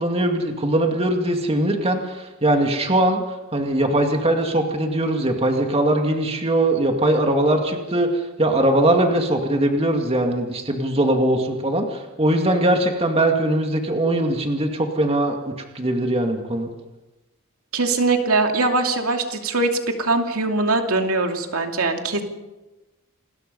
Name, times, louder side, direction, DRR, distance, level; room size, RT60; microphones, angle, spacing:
voice 1, 0.0-3.2 3.5-8.1 8.4-16.7, right 1 dB, 25° right, 3 dB, 2.3 m, -21 dB
voice 2, 17.7-19.7 20.0-22.2, right 3 dB, 75° right, 4 dB, 2.6 m, -21 dB
28.0 x 21.0 x 5.5 m, 1.1 s
head